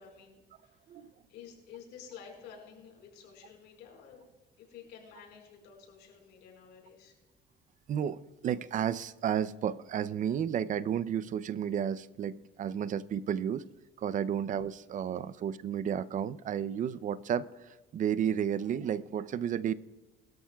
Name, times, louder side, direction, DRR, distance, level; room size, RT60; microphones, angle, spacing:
voice 1, 0.0-4.3 4.6-7.1, left 7 dB, 85° left, 0 dB, 4.9 m, -52 dB
voice 2, 7.9-13.6 14.0-17.5 17.9-19.7, right 9 dB, 50° right, 16 dB, 0.5 m, -32 dB
21.5 x 13.0 x 2.3 m, 1.2 s
cardioid pair, 110°, 17 cm